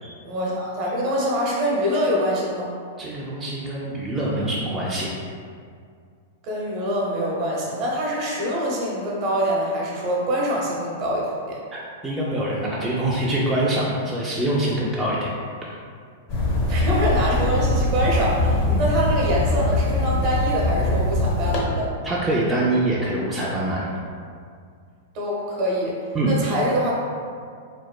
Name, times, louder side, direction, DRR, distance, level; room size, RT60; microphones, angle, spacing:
voice 1, 0.2-2.7 6.4-11.6 16.7-21.9 25.1-26.0 26.2-26.9, equal, 45° right, -4 dB, 0.7 m, -24 dB
voice 2, 3.0-5.1 11.7-15.3 18.7-18.9 22.0-23.9 26.1-26.3, right 1 dB, 15° right, -6 dB, 0.3 m, -24 dB
sound 1, 16.3-21.6, left 1 dB, 45° left, 0.6 m, -22 dB
3.0 x 2.0 x 2.2 m, 2.2 s
hypercardioid pair, 110°, 0 cm